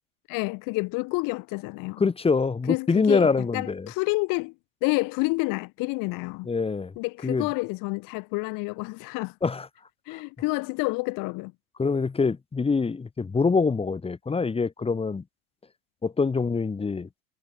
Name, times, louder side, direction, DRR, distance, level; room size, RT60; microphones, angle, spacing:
voice 1, 0.3-2.1 2.7-4.5 4.8-6.5 7.0-9.3 10.1-11.5, left 26 dB, 50° left, 1.6 m, -29 dB
voice 2, 2.0-3.9 6.5-6.9 7.2-7.5 9.4-9.7 10.1-10.2 11.8-15.2 16.0-17.1, left 4 dB, 15° left, 1.3 m, -25 dB
hypercardioid pair, 85°, 42 cm